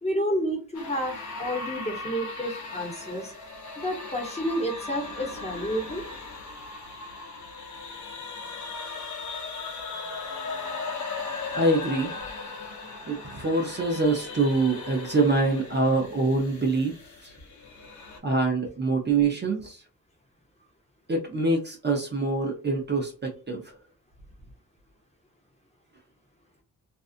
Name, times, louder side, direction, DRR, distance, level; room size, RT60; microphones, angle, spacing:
voice 1, 0.0-3.3 3.8-6.0, equal, 20° left, 0 dB, 1.0 m, -30 dB
sound 1, 0.7-18.2, left 3 dB, 55° left, 1.0 m, -38 dB
voice 2, 11.5-12.1 13.0-17.0 17.2-17.3 18.2-19.8 21.1-23.8, right 3 dB, 30° right, 1 dB, 0.7 m, -25 dB
2.6 x 2.3 x 2.5 m, 0.35 s
wide cardioid pair, 105°, 35 cm